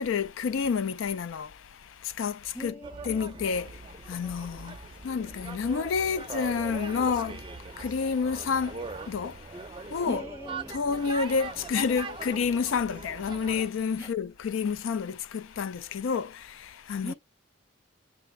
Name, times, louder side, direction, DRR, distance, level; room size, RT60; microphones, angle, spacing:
voice 1, 0.0-2.8 3.0-10.2 10.7-17.1, left 5 dB, 70° left, 0.4 m, -30 dB
voice 2, 2.5-3.3 10.0-10.7 14.0-14.1 17.0-17.1, left 1 dB, 15° left, 0.8 m, -40 dB
sound 1, 2.8-13.7, right 3 dB, 25° right, 0.4 m, -41 dB
6.7 x 2.5 x 3.1 m
head